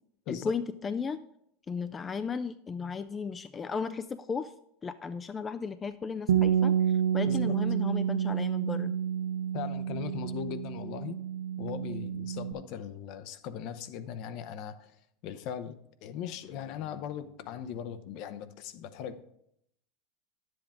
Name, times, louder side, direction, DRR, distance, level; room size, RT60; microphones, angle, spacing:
voice 1, 0.3-1.3 1.7-4.5 4.8-9.0, left 5 dB, 25° left, 11 dB, 0.4 m, -35 dB
Bass guitar, 6.3-12.5, right 9 dB, 90° right, 0.5 m, -29 dB
voice 2, 7.3-7.6 9.5-11.2 11.6-14.9 15.2-15.8 16.0-19.2, left 8 dB, 60° left, 12 dB, 0.7 m, -39 dB
10.0 x 7.8 x 3.6 m, 0.76 s
hypercardioid pair, 105°, 0 cm